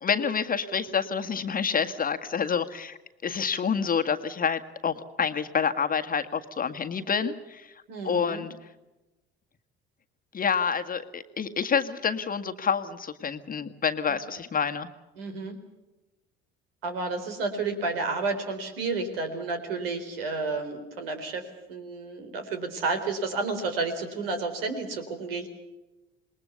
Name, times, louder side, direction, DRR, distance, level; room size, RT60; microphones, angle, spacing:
voice 1, 0.0-3.0 3.2-7.7 8.0-8.5 10.3-14.9, left 6 dB, 30° left, 8 dB, 1.7 m, -28 dB
voice 2, 7.9-8.4 15.2-15.6 16.8-25.5, right 3 dB, 70° right, 7 dB, 4.0 m, -31 dB
27.5 x 21.5 x 7.0 m, 1.0 s
figure-of-eight pair, 60°, 30 cm